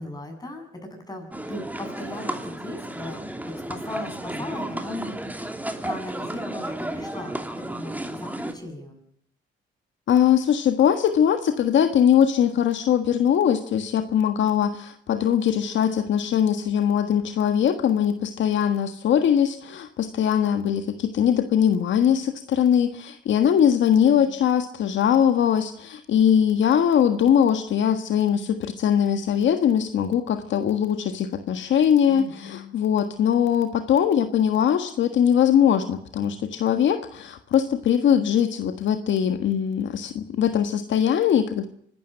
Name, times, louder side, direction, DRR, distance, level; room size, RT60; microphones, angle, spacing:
voice 1, 0.0-5.5 5.8-7.4 7.6-9.0 24.0-24.4 32.1-32.8, left 1 dB, 20° left, 4 dB, 7.9 m, -38 dB
sound 1, 1.3-8.5, right 1 dB, 10° right, 2.9 m, -33 dB
voice 2, 10.1-41.7, left 9 dB, 70° left, 8 dB, 1.6 m, -21 dB
25.5 x 12.5 x 9.1 m, 0.66 s
cardioid pair, 90°, 20 cm